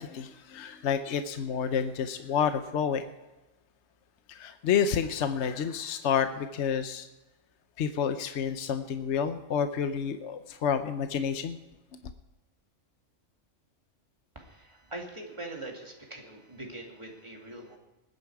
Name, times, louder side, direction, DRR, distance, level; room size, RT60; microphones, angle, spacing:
voice 1, 0.0-3.1 4.3-7.1 7.8-11.6, left 7 dB, 65° left, 9 dB, 1.0 m, -29 dB
voice 2, 14.3-17.8, right 2 dB, 25° right, 0 dB, 2.6 m, -42 dB
20.5 x 9.6 x 4.8 m, 1.1 s
omnidirectional pair, 1.3 m